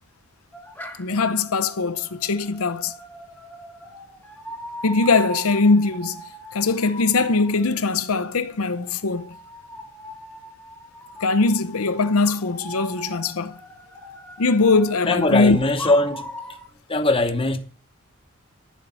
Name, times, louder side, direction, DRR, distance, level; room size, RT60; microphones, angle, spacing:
sound 1, 0.5-16.7, right 1 dB, 10° left, 1.3 m, -39 dB
voice 1, 1.0-2.9 4.8-6.2 6.5-9.3 11.2-13.5 14.4-15.6, left 3 dB, 90° left, 0.8 m, -21 dB
voice 2, 15.1-16.3 16.9-17.6, left 2 dB, 25° left, 0.9 m, -20 dB
10.5 x 7.4 x 5.6 m
head